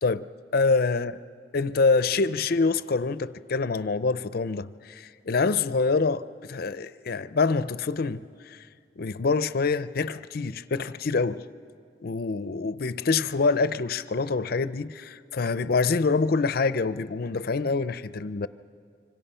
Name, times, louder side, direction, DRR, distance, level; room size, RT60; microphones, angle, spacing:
voice 1, 0.0-1.1 1.5-8.6 9.0-11.4 12.0-18.5, left 4 dB, 60° left, 0.5 m, -26 dB
26.0 x 25.0 x 5.6 m
head